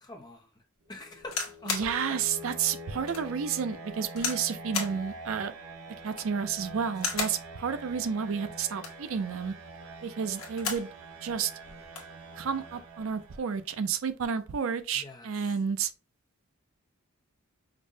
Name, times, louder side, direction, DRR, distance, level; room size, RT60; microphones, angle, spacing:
voice 1, 0.0-0.6 0.9-2.2 14.9-15.3, left 2 dB, 20° left, 0.6 m, -46 dB
sound 1, 0.9-13.7, right 2 dB, 90° right, 0.7 m, -45 dB
sound 2, 1.2-1.9 2.5-2.6 3.1-3.2 4.2-4.5 4.7-5.0 6.0-6.4 6.9-7.4 8.6-9.1 10.2-10.9 11.3-11.4 11.6-12.1 13.0-13.2, left 5 dB, 70° left, 1.2 m, -34 dB
voice 2, 1.7-5.5 6.0-9.5 10.0-10.9 11.2-11.5 12.4-15.9, right 6 dB, 65° right, 0.4 m, -31 dB
5.2 x 2.1 x 2.6 m
head